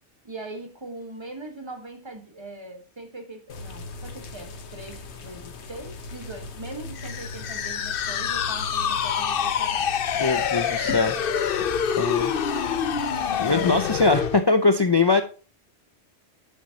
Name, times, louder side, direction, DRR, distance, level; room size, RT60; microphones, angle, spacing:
voice 1, 0.2-11.2, right 2 dB, 25° right, 5 dB, 1.4 m, -41 dB
sound 1, 3.5-14.2, left 3 dB, 75° left, 1.3 m, -39 dB
sound 2, 7.0-14.4, left 8 dB, 60° left, 0.8 m, -26 dB
voice 2, 10.2-11.2 12.0-12.3 13.4-15.2, left 3 dB, 35° left, 9 dB, 0.4 m, -21 dB
10.0 x 6.3 x 2.8 m, 0.36 s
omnidirectional pair, 1.2 m